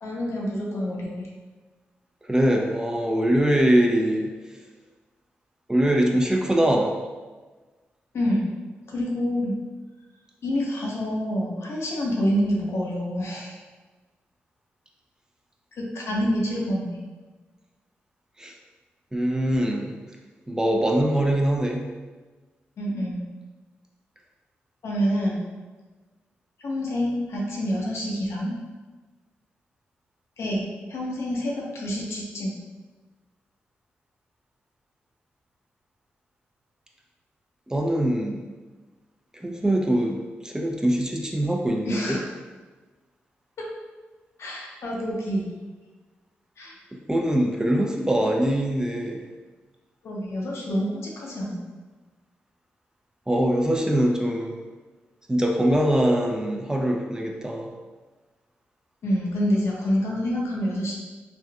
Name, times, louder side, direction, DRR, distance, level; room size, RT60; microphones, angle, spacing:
voice 1, 0.0-1.3 8.1-8.5 8.9-9.6 10.4-13.6 15.8-17.0 22.8-23.2 24.8-25.4 26.6-28.6 30.4-32.6 41.9-42.2 43.6-43.7 44.4-45.5 46.6-46.7 50.0-51.6 59.0-60.9, equal, 70° left, -3 dB, 0.8 m, -27 dB
voice 2, 2.2-4.3 5.7-7.0 18.4-18.5 19.1-19.9 20.5-21.8 37.7-38.4 39.4-40.2 40.4-42.2 47.1-49.2 53.3-54.6 55.3-57.7, right 1 dB, 15° right, 1 dB, 0.5 m, -23 dB
3.4 x 2.5 x 2.3 m, 1.3 s
supercardioid pair, 45°, 5 cm